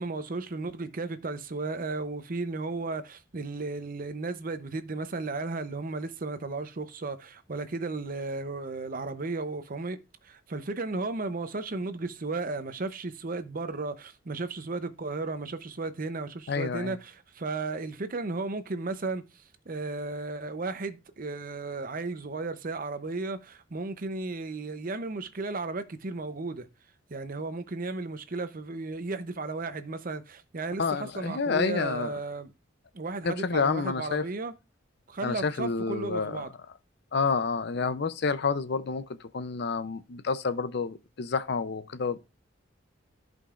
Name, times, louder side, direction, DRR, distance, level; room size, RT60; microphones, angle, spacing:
voice 1, 0.0-10.0 10.2-19.2 19.7-26.7 27.1-32.5 32.9-34.5 35.1-36.5, right 3 dB, 45° right, 0.7 m, -34 dB
voice 2, 16.5-16.9 30.8-32.1 33.2-34.3 35.2-36.4 37.1-39.0 39.3-42.2, left 4 dB, 60° left, 0.6 m, -29 dB
14.0 x 5.2 x 2.4 m
head